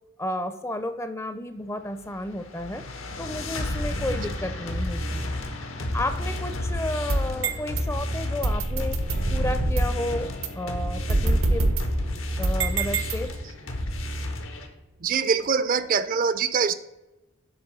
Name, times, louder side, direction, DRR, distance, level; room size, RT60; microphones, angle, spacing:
voice 1, 0.2-2.8 3.2-5.2 5.9-9.0 9.3-10.3 10.6-11.7 12.4-13.3, left 1 dB, 15° left, 9 dB, 0.4 m, -32 dB
sound 1, 2.0-14.7, left 1 dB, 90° left, 1.1 m, -31 dB
sound 2, 3.1-11.2, left 2 dB, 55° left, 0.8 m, -42 dB
sound 3, 7.1-7.8 8.4-10.0 10.4-10.5 11.1-13.6, right 2 dB, 85° right, 0.8 m, -26 dB
voice 2, 15.0-16.8, right 6 dB, 45° right, 13 dB, 0.4 m, -24 dB
8.2 x 3.4 x 6.1 m, 0.98 s
head